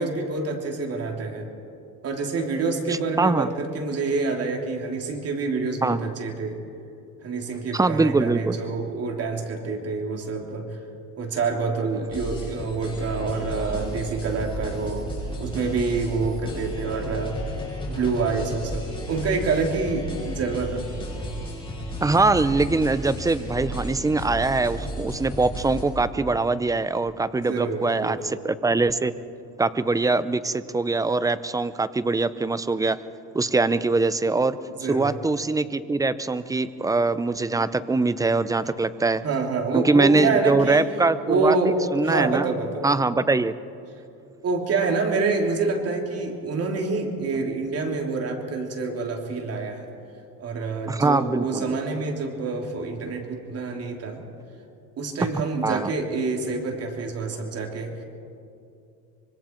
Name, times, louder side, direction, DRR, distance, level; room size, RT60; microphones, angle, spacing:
voice 1, 0.0-1.5 2.0-6.6 7.2-10.8 11.2-15.1 15.4-17.3 17.9-20.9 27.4-28.2 34.7-35.1 39.2-40.9 41.3-41.8 42.0-42.9 44.4-49.9 50.4-54.2 55.0-58.0, right 4 dB, 50° right, 2 dB, 3.1 m, -27 dB
voice 2, 3.2-3.5 5.8-6.0 7.7-8.6 22.0-29.1 29.6-33.0 33.3-34.6 34.9-39.2 39.7-42.5 42.8-43.5 50.9-51.8 55.6-55.9, right 3 dB, 10° right, 14 dB, 0.6 m, -23 dB
sound 1, 12.1-25.8, equal, 15° left, 7.3 m, -33 dB
25.0 x 25.0 x 4.5 m, 2.6 s
cardioid pair, 120°, 32 cm